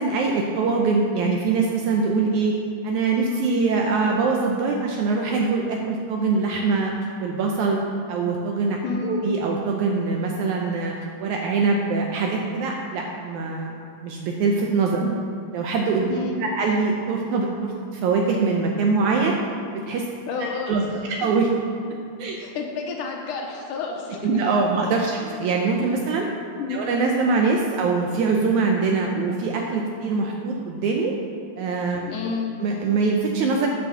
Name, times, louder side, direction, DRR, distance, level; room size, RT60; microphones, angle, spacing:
voice 1, 0.0-2.6 2.8-6.9 7.2-7.8 8.1-8.8 9.0-10.9 11.2-13.8 14.0-15.0 15.5-19.3 19.7-20.1 20.4-21.5 22.2-22.4 24.2-26.3 26.7-31.1 31.6-32.0 32.6-33.7, right 4 dB, 75° right, 0 dB, 2.0 m, -23 dB
voice 2, 8.8-9.3 15.0-15.2 16.1-16.5 20.3-20.7 21.0-21.3 22.4-24.4 25.2-25.3 26.6-27.0 32.1-32.5, left 5 dB, 80° left, 1 dB, 2.6 m, -30 dB
9.3 x 6.3 x 7.0 m, 2.4 s
omnidirectional pair, 3.7 m